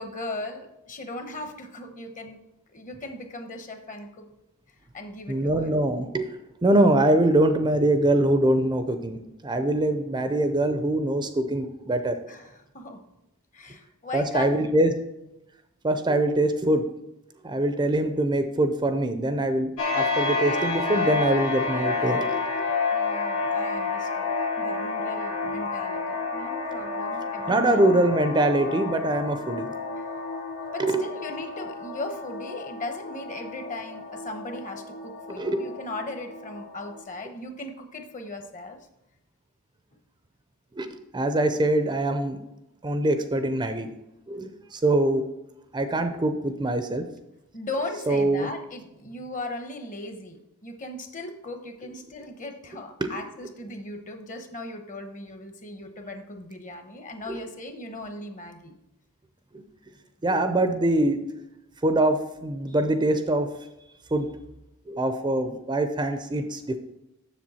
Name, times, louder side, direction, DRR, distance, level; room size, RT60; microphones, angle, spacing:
voice 1, 0.0-2.4 2.7-4.3 4.9-5.7 12.3-13.0 13.5-14.7 22.9-28.0 30.0-30.1 30.7-38.8 47.5-58.7, left 2 dB, 35° left, 7 dB, 0.9 m, -38 dB
voice 2, 5.3-6.3 6.6-12.2 14.1-14.9 15.8-16.8 17.4-22.7 27.5-29.7 30.8-31.0 35.4-35.6 40.8-40.9 41.1-42.4 42.8-43.9 44.3-45.2 45.7-47.0 48.1-48.5 53.0-53.1 57.3-57.4 60.2-61.2 61.8-63.5 64.1-64.3 64.9-66.8, right 1 dB, 20° right, 8 dB, 0.5 m, -23 dB
sound 1, 19.8-37.0, left 4 dB, 80° left, 1.7 m, -30 dB
7.4 x 6.8 x 4.2 m, 0.89 s
head